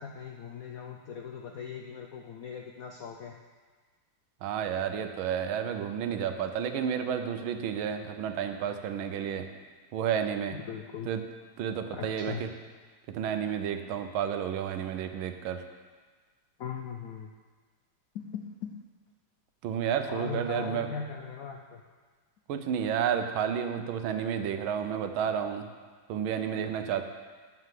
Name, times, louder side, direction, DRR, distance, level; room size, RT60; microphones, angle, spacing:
voice 1, 0.0-3.4 10.5-11.1 11.9-12.5 16.6-17.3 18.1-18.7 20.1-21.8, left 7 dB, 85° left, 2 dB, 0.7 m, -39 dB
voice 2, 4.4-9.5 9.9-10.6 11.1-11.2 11.6-12.5 13.1-15.6 19.6-20.9 22.5-25.7 26.1-27.0, right 8 dB, 80° right, 7 dB, 1.5 m, -31 dB
8.9 x 5.9 x 7.5 m, 1.4 s
omnidirectional pair, 2.2 m